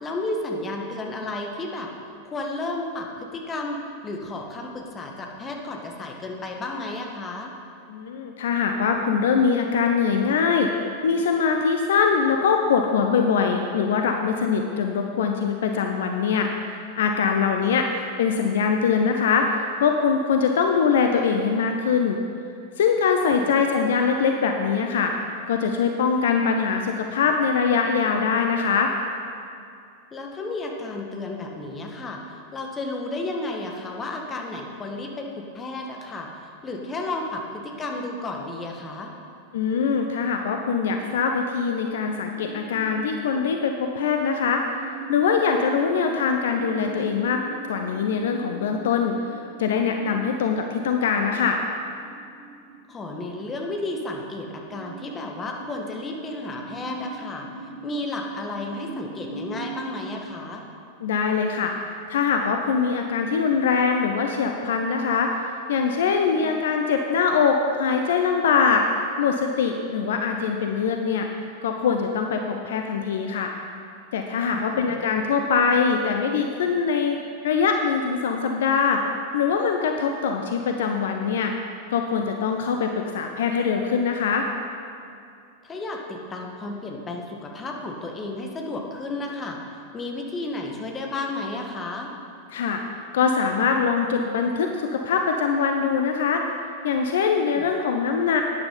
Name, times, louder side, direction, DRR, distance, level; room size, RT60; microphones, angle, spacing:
voice 1, 0.0-1.9 2.2-7.5 17.6-17.8 23.2-23.5 30.1-39.1 45.7-45.9 52.9-57.5 57.8-60.6 66.4-66.6 74.5-75.0 85.6-89.6 89.9-92.1 97.5-97.7, left 2 dB, 20° left, 1 dB, 1.7 m, -33 dB
voice 2, 7.9-10.7 11.0-22.2 22.8-25.1 25.5-28.9 39.5-44.6 45.1-47.4 47.7-49.2 49.6-51.6 61.0-61.7 62.1-65.3 65.7-68.8 69.2-71.3 71.6-73.5 74.1-77.2 77.4-79.0 79.3-81.5 81.9-84.5 92.5-92.8 93.1-96.4 96.8-98.4, left 6 dB, 60° left, 4 dB, 0.8 m, -23 dB
sound 1, 40.8-60.1, right 4 dB, 50° right, 2.1 m, -41 dB
12.0 x 9.7 x 5.8 m, 2.5 s
figure-of-eight pair, 90°, 0 cm